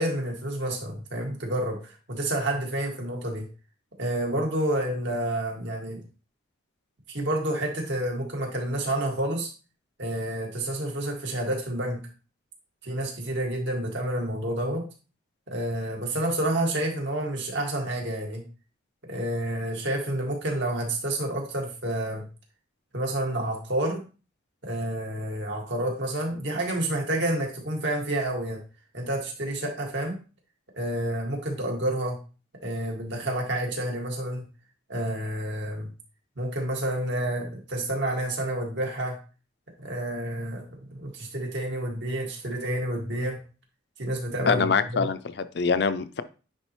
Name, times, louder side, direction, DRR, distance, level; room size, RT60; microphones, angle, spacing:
voice 1, 0.0-3.5 4.0-6.0 7.1-9.5 10.0-12.0 12.8-14.8 15.5-18.4 19.0-22.2 22.9-24.0 24.6-28.6 28.9-30.2 30.8-32.2 32.6-34.4 34.9-35.9 36.4-39.2 39.8-43.4 44.0-45.1, right 1 dB, 65° right, 0 dB, 2.0 m, -29 dB
voice 2, 44.5-46.2, left 5 dB, 55° left, 12 dB, 0.5 m, -24 dB
9.6 x 4.1 x 3.1 m, 0.34 s
head